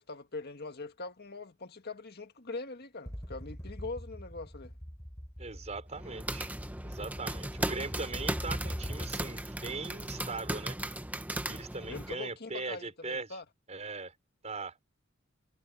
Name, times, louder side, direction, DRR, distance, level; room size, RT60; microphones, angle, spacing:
voice 1, 0.0-4.7 11.8-13.5, left 3 dB, 50° left, 1.8 m, -42 dB
sound 1, 3.1-9.4, equal, 15° left, 3.2 m, -42 dB
voice 2, 5.4-6.5 6.8-10.8 11.5-13.3 13.7-14.1 14.4-14.8, right 3 dB, 35° right, 4.8 m, -40 dB
sound 2, 5.9-12.1, right 1 dB, 10° right, 0.9 m, -37 dB
head